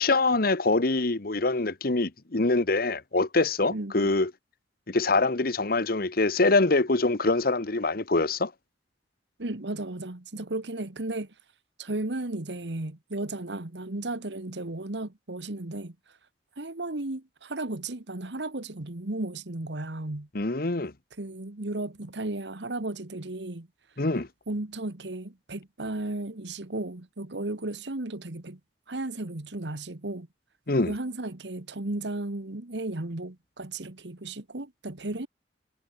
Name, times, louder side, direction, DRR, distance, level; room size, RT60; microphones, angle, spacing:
voice 1, 0.0-4.3 4.9-8.5 20.3-20.9 24.0-24.3 30.7-30.9, left 3 dB, 55° left, 1.3 m, -24 dB
voice 2, 3.7-4.1 9.4-11.3 11.8-16.0 16.6-20.3 21.2-23.7 24.5-28.6 28.9-30.3 30.9-35.3, right 2 dB, 80° right, 1.7 m, -34 dB
head